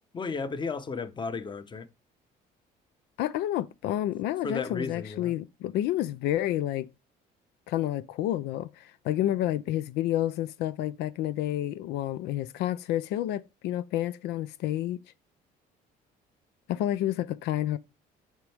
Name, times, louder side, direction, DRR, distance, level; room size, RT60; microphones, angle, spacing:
voice 1, 0.1-1.9 4.4-5.3, left 4 dB, 25° left, 0.9 m, -34 dB
voice 2, 3.2-6.9 7.7-15.0 16.7-17.8, left 13 dB, 85° left, 0.5 m, -29 dB
7.3 x 5.3 x 3.4 m
cardioid pair, 110°, 17 cm